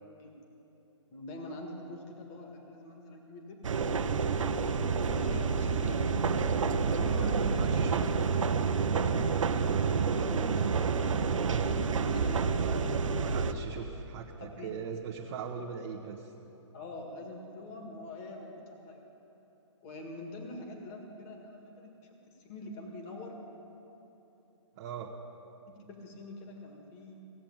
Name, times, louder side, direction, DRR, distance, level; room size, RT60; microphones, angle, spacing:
voice 1, 1.1-4.3 5.1-6.1 6.9-8.6 8.9-13.0 14.4-14.7 16.7-19.0 19.8-21.9 22.4-23.4 25.7-27.3, left 1 dB, 30° left, 2 dB, 1.9 m, -45 dB
sound 1, 3.6-13.5, right 5 dB, 85° right, 0.8 m, -28 dB
voice 2, 7.0-8.0 12.6-12.8 13.2-16.3 24.8-25.2, right 7 dB, 30° right, -3 dB, 1.1 m, -40 dB
16.5 x 7.6 x 8.8 m, 2.9 s
hypercardioid pair, 155°, 16 cm